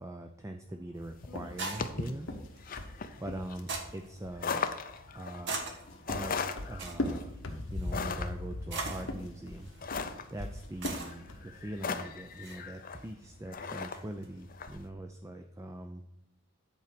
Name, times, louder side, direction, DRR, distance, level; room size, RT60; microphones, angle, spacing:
voice 1, 0.0-2.3 3.2-4.6 5.1-5.6 6.1-6.3 6.7-7.3 7.7-9.7 10.3-16.0, right 1 dB, 15° right, 6 dB, 0.5 m, -42 dB
sound 1, 0.7-14.9, right 3 dB, 60° right, 1.4 m, -45 dB
sound 2, 1.0-14.8, left 4 dB, 45° left, 0.6 m, -39 dB
sound 3, 1.3-3.9 5.6-8.0 8.9-11.5, left 1 dB, 70° left, 1.2 m, -39 dB
8.4 x 4.6 x 6.8 m, 0.88 s
head